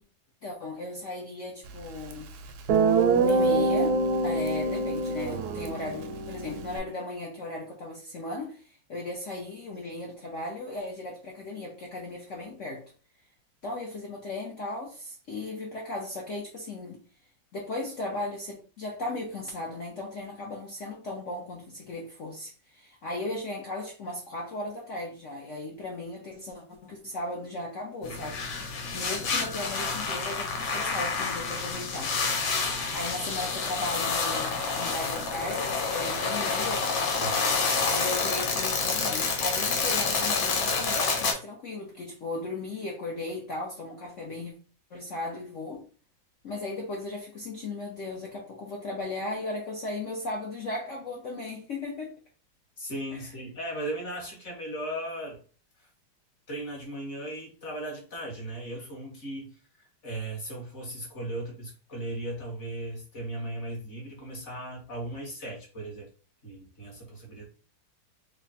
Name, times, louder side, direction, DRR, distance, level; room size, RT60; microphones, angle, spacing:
voice 1, 0.4-2.3 3.1-12.8 13.6-17.0 17.5-28.4 28.9-32.1 32.9-36.9 37.8-44.5 44.9-45.8 46.4-52.2 53.1-53.3, left 2 dB, 65° left, 0.7 m, -36 dB
Guitar, 2.1-2.2 2.7-6.8, right 3 dB, 75° right, 0.9 m, -25 dB
sound 1, 28.0-41.3, left 4 dB, 85° left, 1.7 m, -28 dB
voice 2, 52.8-55.4 55.8-55.9 56.5-66.1 66.4-67.4, right 1 dB, 40° left, 1.4 m, -37 dB
3.4 x 2.2 x 4.0 m
omnidirectional pair, 2.1 m